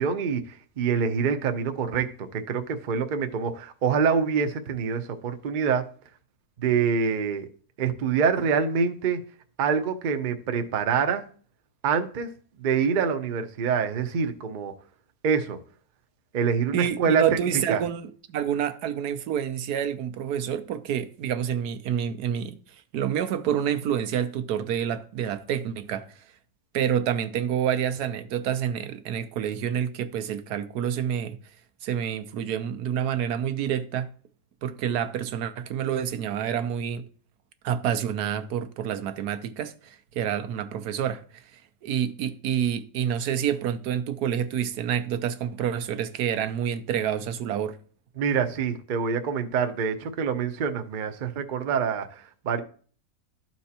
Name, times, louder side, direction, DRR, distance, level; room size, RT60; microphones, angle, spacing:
voice 1, 0.0-5.9 6.6-7.5 7.8-9.2 9.6-11.2 11.8-12.3 12.6-14.7 15.2-15.6 16.3-17.2 17.5-17.8 48.2-52.6, right 6 dB, 50° right, 0.6 m, -26 dB
voice 2, 16.7-22.6 22.9-26.1 26.7-31.4 31.8-34.1 34.6-37.0 37.6-41.2 41.5-47.8, right 9 dB, 90° right, 1.3 m, -28 dB
13.0 x 4.4 x 2.8 m
omnidirectional pair, 1.6 m